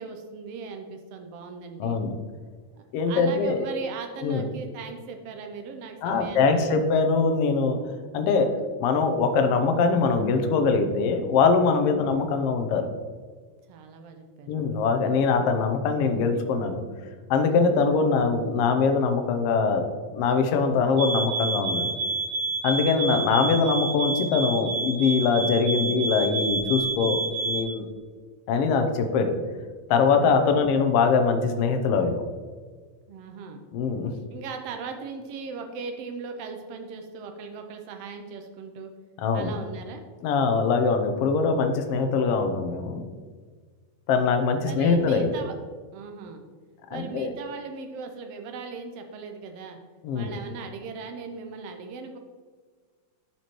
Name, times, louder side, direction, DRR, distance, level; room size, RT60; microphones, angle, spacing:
voice 1, 0.0-2.0 2.7-6.8 13.7-14.5 30.5-30.8 33.1-33.6 34.3-38.9 39.3-40.0 44.6-45.5 45.9-46.4 46.9-49.8 50.1-52.2, right 5 dB, 85° right, 5 dB, 1.4 m, -38 dB
voice 2, 1.8-2.1 2.9-3.6 4.2-4.4 6.0-7.8 8.1-8.5 8.8-12.8 14.5-16.8 17.3-19.8 20.1-21.9 22.6-27.8 28.5-29.4 29.9-32.2 33.7-34.1 39.2-39.5 40.2-43.0 44.1-45.3 46.9-47.3 50.0-50.3, left 4 dB, 75° left, 6 dB, 1.4 m, -23 dB
sound 1, 21.0-27.7, right 3 dB, 60° right, 2.6 m, -29 dB
11.0 x 4.4 x 3.0 m, 1.5 s
omnidirectional pair, 3.4 m